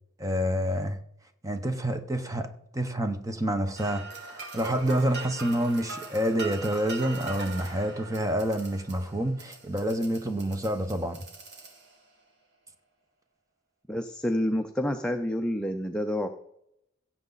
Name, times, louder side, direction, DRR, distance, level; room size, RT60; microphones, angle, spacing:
voice 1, 0.2-1.0 1.4-2.5 2.7-11.2, right 1 dB, 15° right, 0.9 m, -28 dB
sound 1, 3.8-12.1, right 4 dB, 55° right, 2.0 m, -41 dB
voice 2, 13.9-16.3, left 1 dB, 5° left, 0.5 m, -28 dB
16.5 x 7.1 x 4.0 m
head